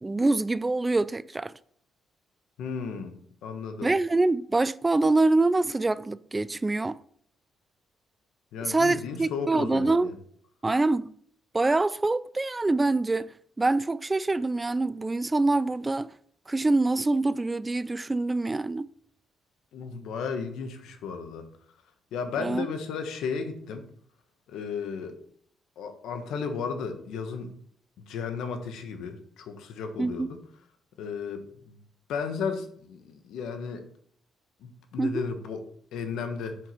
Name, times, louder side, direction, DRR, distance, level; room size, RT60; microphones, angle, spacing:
voice 1, 0.0-1.5 3.8-7.0 8.6-10.1 10.6-11.1 11.5-13.3 13.6-16.1 16.5-18.9 22.4-22.7 30.0-30.3 35.0-35.2, right 2 dB, 20° right, 0.3 m, -25 dB
voice 2, 2.6-3.9 8.5-10.1 19.7-21.5 22.1-23.8 24.5-25.1 25.8-27.5 28.0-30.4 31.0-31.8 32.1-33.8 34.6-35.6 35.9-36.6, left 5 dB, 80° left, 1.2 m, -34 dB
7.9 x 6.0 x 4.5 m
cardioid pair, 90°, 0 cm